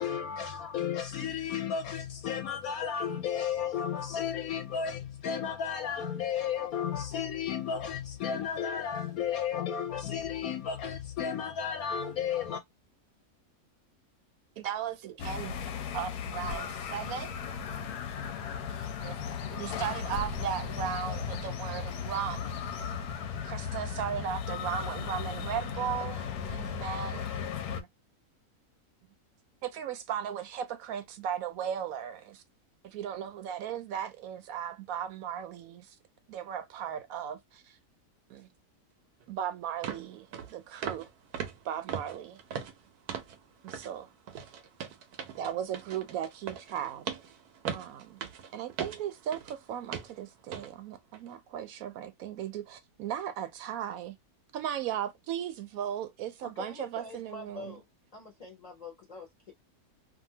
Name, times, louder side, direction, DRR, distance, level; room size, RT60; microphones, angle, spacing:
voice 1, 0.0-12.6, left 8 dB, 75° left, 1.0 m, -33 dB
voice 2, 14.6-15.5 15.9-17.3 19.0-19.1 19.5-22.5 23.4-27.3 27.7-27.9 29.6-32.4 32.8-35.9 36.3-37.8 38.3-38.5 39.3-41.1 41.6-42.4 43.6-44.1 45.4-47.1 47.7-48.2 48.5-54.2 54.5-57.7, right 9 dB, 75° right, 1.0 m, -36 dB
sound 1, 15.2-27.8, left 6 dB, 90° left, 1.1 m, -36 dB
sound 2, 39.2-39.3 39.8-40.1 40.3-40.5 40.8-41.1 41.3-43.4 43.7-43.9 44.3-49.6 49.9-50.2 50.5-50.7 51.1-51.3, right 7 dB, 90° right, 1.2 m, -39 dB
voice 3, 56.4-57.9 58.1-59.5, left 3 dB, 40° left, 0.6 m, -45 dB
2.7 x 2.6 x 2.7 m
omnidirectional pair, 1.6 m